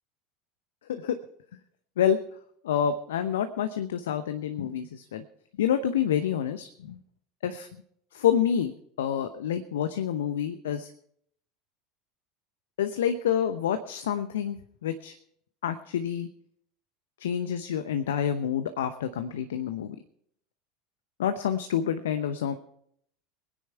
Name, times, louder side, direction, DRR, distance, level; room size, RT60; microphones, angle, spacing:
voice 1, 2.6-5.2 5.6-7.0 7.4-7.8 8.1-10.9 12.8-15.2 15.6-16.3 17.2-20.0 21.2-22.6, left 9 dB, 70° left, 10 dB, 0.8 m, -28 dB
22.0 x 10.0 x 4.5 m, 0.67 s
figure-of-eight pair, 75°, 0 cm